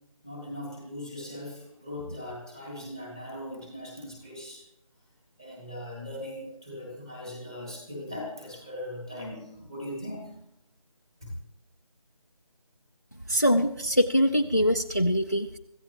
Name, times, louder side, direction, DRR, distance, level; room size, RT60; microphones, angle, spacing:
voice 1, 0.2-4.6 5.4-10.3 11.2-11.3, left 1 dB, 5° right, -1 dB, 1.1 m, -39 dB
voice 2, 13.3-15.6, equal, 30° left, 7 dB, 0.4 m, -23 dB
25.0 x 14.5 x 3.0 m, 0.81 s
figure-of-eight pair, 180°, 18 cm